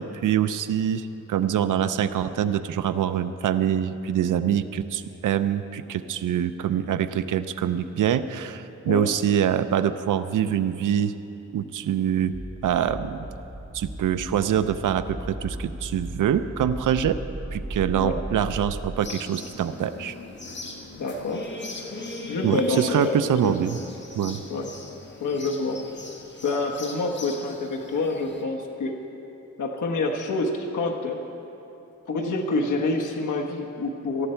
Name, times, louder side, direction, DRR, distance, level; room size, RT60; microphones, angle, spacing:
voice 1, 0.0-11.1 11.5-12.3 12.6-13.3 13.7-17.2 17.5-20.2 22.4-23.8 24.2-24.4, right 9 dB, 90° right, 11 dB, 0.6 m, -25 dB
sound 1, 12.3-19.0, right 1 dB, 20° right, 1.0 m, -36 dB
sound 2, 19.0-28.4, left 2 dB, 35° left, 1.7 m, -39 dB
voice 2, 21.0-21.4 22.3-23.5 24.5-24.7 25.2-25.8 26.4-28.9 29.6-31.2 32.1-34.3, left 3 dB, 80° left, 0 dB, 1.4 m, -27 dB
18.0 x 14.0 x 4.5 m, 2.8 s
wide cardioid pair, 100°, 30 cm